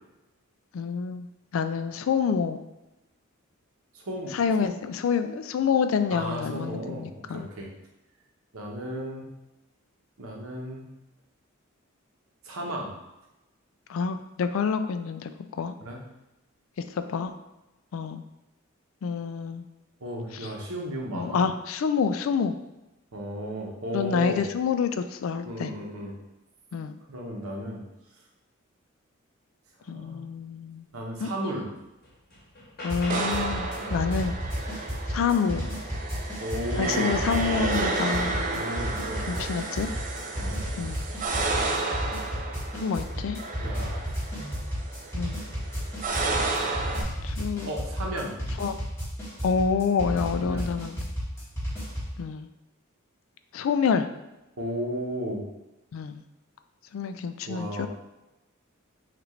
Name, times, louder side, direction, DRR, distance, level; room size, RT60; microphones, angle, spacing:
voice 1, 0.7-1.3 1.5-2.6 4.3-7.5 13.9-15.7 16.9-17.3 17.9-18.2 19.0-19.6 20.4-20.5 21.1-22.6 23.9-25.7 26.7-27.0 29.9-30.9 31.2-31.3 32.8-34.4 35.1-35.7 36.8-38.4 39.3-39.9 40.8-41.0 42.8-43.4 45.1-45.4 47.2-47.7 48.6-48.8 49.4-51.0 52.2-52.5 53.5-54.1 55.9-56.2 56.9-57.9, left 6 dB, 70° left, 9 dB, 0.3 m, -27 dB
voice 2, 3.9-4.7 6.1-7.7 8.5-9.3 10.2-10.8 12.4-13.0 15.8-16.0 20.0-21.5 23.1-24.4 25.4-26.1 27.1-27.8 29.9-30.2 30.9-31.7 33.7-33.9 36.4-37.2 38.5-39.5 40.3-40.6 43.6-44.8 47.6-48.4 50.4-50.7 54.6-55.4 57.5-57.9, equal, 85° right, -1 dB, 1.0 m, -34 dB
sound 1, 31.2-31.3 31.8-33.6 35.9-36.0 36.5-39.4 40.2-40.7 41.7-42.0, left 1 dB, 50° left, 1.2 m, -45 dB
sound 2, 32.9-52.2, equal, 10° left, 1.3 m, -33 dB
sound 3, 33.1-47.0, right 3 dB, 40° right, 0.5 m, -32 dB
5.9 x 2.5 x 3.1 m, 0.96 s
head